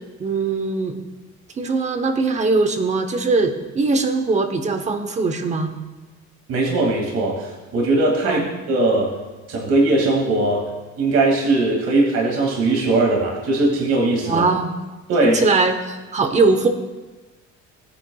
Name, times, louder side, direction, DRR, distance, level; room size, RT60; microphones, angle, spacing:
voice 1, 0.2-1.0 1.5-5.7 8.2-8.4 14.2-14.8 15.2-16.7, right 3 dB, 25° right, 8 dB, 0.9 m, -21 dB
voice 2, 6.5-9.1 9.5-10.6 11.0-14.4 15.1-15.4, right 2 dB, 55° right, -2 dB, 2.3 m, -19 dB
18.0 x 9.8 x 2.3 m, 1.2 s
cardioid pair, 170°, 30 cm